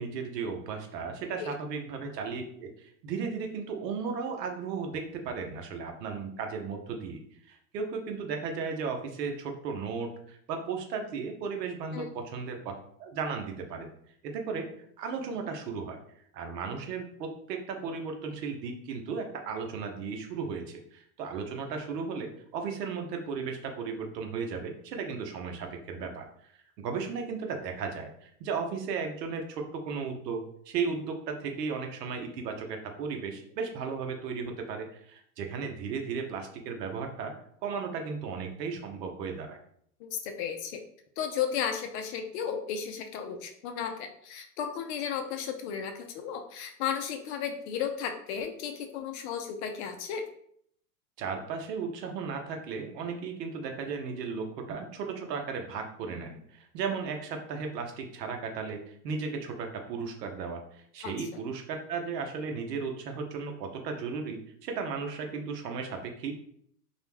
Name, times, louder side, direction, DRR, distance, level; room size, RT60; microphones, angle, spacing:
voice 1, 0.0-7.2 7.5-13.9 14.2-14.7 15.0-16.0 16.3-26.5 26.8-37.3 37.6-39.6 51.2-66.4, right 5 dB, 85° right, 4 dB, 0.8 m, -35 dB
voice 2, 40.0-40.8 41.2-50.2 61.0-61.4, left 8 dB, 45° left, 5 dB, 0.4 m, -34 dB
2.4 x 2.1 x 3.2 m, 0.67 s
hypercardioid pair, 115°, 48 cm